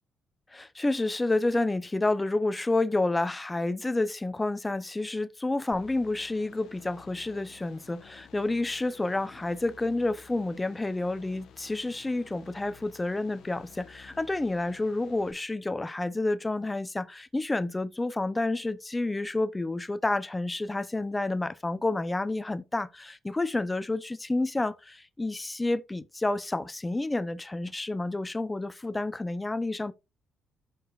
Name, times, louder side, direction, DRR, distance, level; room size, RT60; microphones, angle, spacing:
voice 1, 0.5-29.9, left 2 dB, 15° left, 0.6 m, -29 dB
sound 1, 5.7-15.3, left 8 dB, 70° left, 1.1 m, -53 dB
14.5 x 5.0 x 2.4 m
cardioid pair, 90°, 0 cm